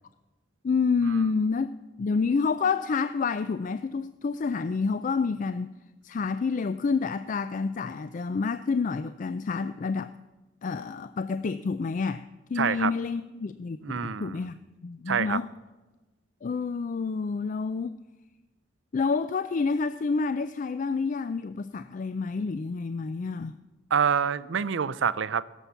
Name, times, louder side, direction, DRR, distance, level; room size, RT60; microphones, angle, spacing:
voice 1, 0.6-1.7 2.0-5.7 6.0-10.1 10.6-12.2 12.5-15.5 16.4-17.9 18.9-23.5, left 4 dB, 45° left, 12 dB, 0.4 m, -28 dB
voice 2, 12.6-12.9 13.8-14.4 15.1-15.4 23.9-25.4, right 7 dB, 80° right, 17 dB, 0.5 m, -26 dB
17.0 x 7.3 x 6.8 m, 1.2 s
head